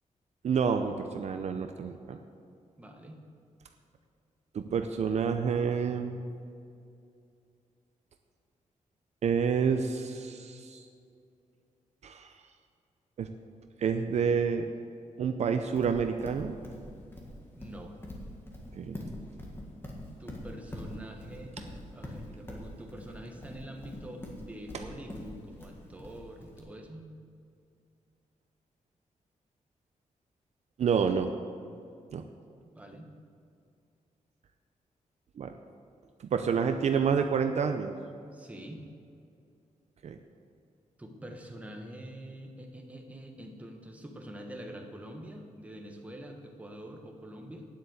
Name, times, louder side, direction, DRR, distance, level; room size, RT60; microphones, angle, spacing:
voice 1, 0.4-2.2 4.5-6.2 9.2-10.8 12.0-12.3 13.2-13.3 13.8-14.7 15.2-16.6 18.8-19.0 30.8-31.3 32.1-32.2 35.4-35.5 36.3-37.9 40.0-40.2, right 6 dB, 55° right, 6 dB, 0.6 m, -28 dB
voice 2, 2.8-3.2 17.5-18.0 20.2-21.5 21.9-27.1 32.6-33.1 38.3-38.8 41.0-47.7, right 1 dB, 10° right, 2 dB, 1.2 m, -45 dB
Livestock farm animals working animals, 15.8-26.6, left 1 dB, 15° left, 1.8 m, -43 dB
9.6 x 8.2 x 7.9 m, 2.4 s
wide cardioid pair, 175°, 13 cm